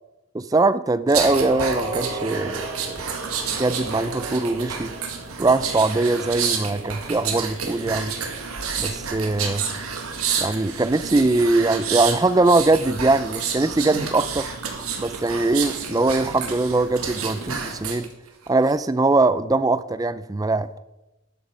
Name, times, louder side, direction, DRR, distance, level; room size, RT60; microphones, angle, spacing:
voice 1, 0.3-3.0 3.6-4.9 5.4-8.1 8.8-9.6 10.4-14.5 15.0-18.1 18.5-20.7, right 2 dB, 15° right, 15 dB, 0.3 m, -21 dB
sound 1, 1.1-18.1 18.5-18.7, right 5 dB, 85° right, 1.9 m, -29 dB
12.0 x 7.9 x 5.1 m, 1.0 s
head